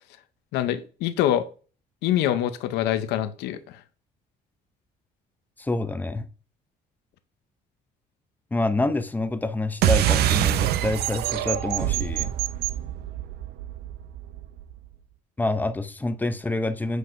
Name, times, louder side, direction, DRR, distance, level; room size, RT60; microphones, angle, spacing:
voice 1, 0.5-1.5 2.0-3.8, left 11 dB, 90° left, 0.7 m, -25 dB
voice 2, 5.6-6.3 8.5-12.3 15.4-17.0, left 2 dB, 10° left, 0.6 m, -27 dB
sound 1, 9.8-14.7, right 12 dB, 70° right, 0.5 m, -25 dB
7.9 x 4.7 x 2.6 m
cardioid pair, 110°, 17 cm